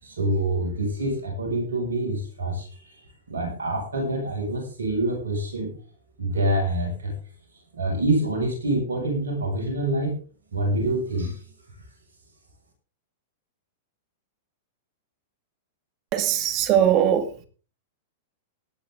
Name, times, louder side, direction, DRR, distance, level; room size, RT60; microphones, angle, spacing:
voice 1, 0.0-5.7 6.2-7.2 7.7-10.2 10.5-11.5, right 1 dB, 85° right, 1 dB, 6.9 m, -26 dB
voice 2, 16.1-17.3, right 10 dB, 40° right, 10 dB, 2.3 m, -20 dB
18.5 x 10.0 x 3.9 m, 0.39 s
hypercardioid pair, 110°, 0 cm